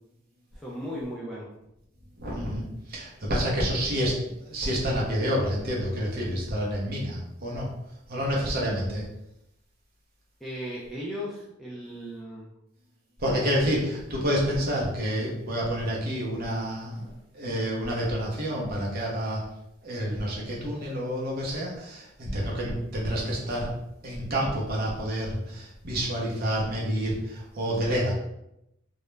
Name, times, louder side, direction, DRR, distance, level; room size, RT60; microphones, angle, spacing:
voice 1, 0.5-1.5 10.4-12.5 16.9-17.0, equal, ahead, -7 dB, 0.3 m, -36 dB
voice 2, 2.2-7.7 8.1-9.0 13.2-19.4 19.8-23.7 24.0-28.1, equal, 45° right, -3 dB, 0.7 m, -28 dB
2.3 x 2.0 x 3.1 m, 0.82 s
head